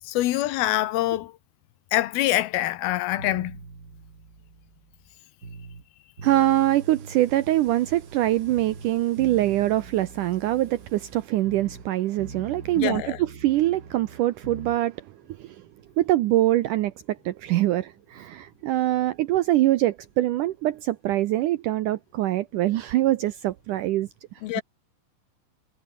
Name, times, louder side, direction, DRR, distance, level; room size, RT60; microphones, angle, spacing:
voice 1, 0.0-1.3 1.9-3.6 12.8-13.2 24.4-24.6, left 15 dB, 80° left, 2.8 m, -25 dB
sound 1, 3.2-5.9 6.2-8.2 8.5-11.9 12.2-14.8, right 4 dB, 25° right, 3.0 m, -43 dB
voice 2, 6.2-15.1 15.4-15.6 16.0-24.1 24.6-24.7, right 15 dB, 80° right, 1.9 m, -24 dB
omnidirectional pair, 4.5 m